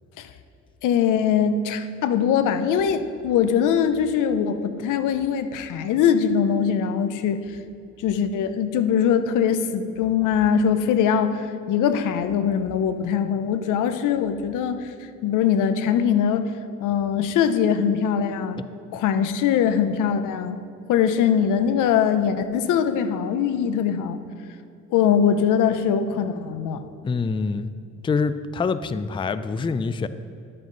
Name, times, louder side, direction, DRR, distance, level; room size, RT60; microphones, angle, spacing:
voice 1, 0.8-7.4 8.0-14.9 15.2-16.5 16.8-18.6 18.9-20.6 20.9-24.2 24.9-26.8, left 8 dB, 85° left, 10 dB, 0.7 m, -22 dB
voice 2, 27.0-27.7 28.0-30.1, left 4 dB, 15° left, 13 dB, 0.4 m, -25 dB
12.0 x 7.6 x 3.9 m, 2.6 s
cardioid pair, 90°, 30 cm